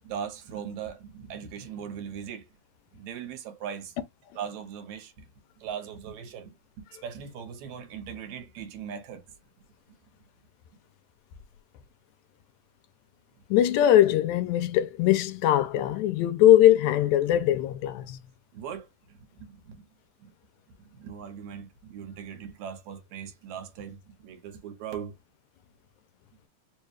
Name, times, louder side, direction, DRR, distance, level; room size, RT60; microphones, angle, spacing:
voice 1, 0.0-2.5 2.9-4.0 4.3-5.3 5.6-9.2 18.5-19.9 20.2-20.3 21.0-25.1, right 8 dB, 75° right, 2.3 m, -39 dB
voice 2, 13.5-18.2, left 12 dB, 80° left, 1.8 m, -21 dB
4.9 x 2.2 x 3.2 m
omnidirectional pair, 3.5 m